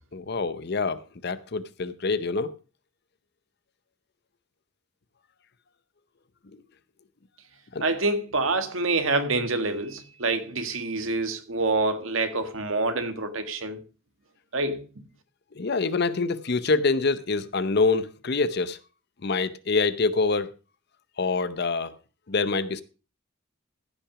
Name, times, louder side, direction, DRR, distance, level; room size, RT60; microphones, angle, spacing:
voice 1, 0.1-2.5 7.7-7.8 15.5-18.8 19.2-20.5 21.2-21.9 22.3-22.8, left 4 dB, 55° left, 0.7 m, -26 dB
voice 2, 7.8-13.8 14.5-14.8, right 3 dB, 80° right, 1.6 m, -26 dB
15.0 x 6.1 x 4.8 m
head